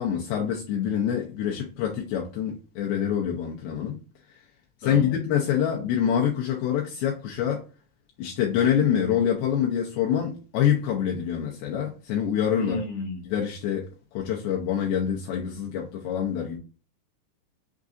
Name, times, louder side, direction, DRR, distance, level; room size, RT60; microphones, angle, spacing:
voice 1, 0.0-4.0 4.8-7.6 8.2-12.8 13.2-13.9 14.1-16.6, left 9 dB, 90° left, 2.2 m, -26 dB
voice 2, 4.8-5.2 12.5-13.2, left 2 dB, 60° left, 1.8 m, -33 dB
6.5 x 2.5 x 2.5 m
omnidirectional pair, 5.1 m